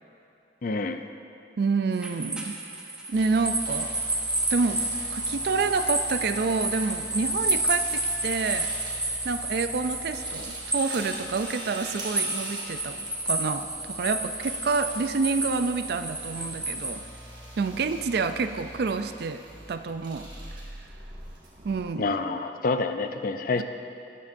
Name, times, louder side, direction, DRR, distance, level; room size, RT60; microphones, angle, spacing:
voice 1, 0.6-1.0 22.0-23.6, left 3 dB, 50° left, 8 dB, 0.5 m, -27 dB
voice 2, 1.6-2.6 3.1-3.9 4.5-8.7 9.2-17.1 17.6-19.4 19.7-20.3 21.6-22.2 23.5-23.6, right 4 dB, 60° right, 10 dB, 0.4 m, -28 dB
sound 1, 1.9-16.9, right 2 dB, 5° right, 0.8 m, -31 dB
sound 2, 3.1-22.1, right 1 dB, 25° right, 1.7 m, -43 dB
12.5 x 9.8 x 2.6 m, 2.8 s
head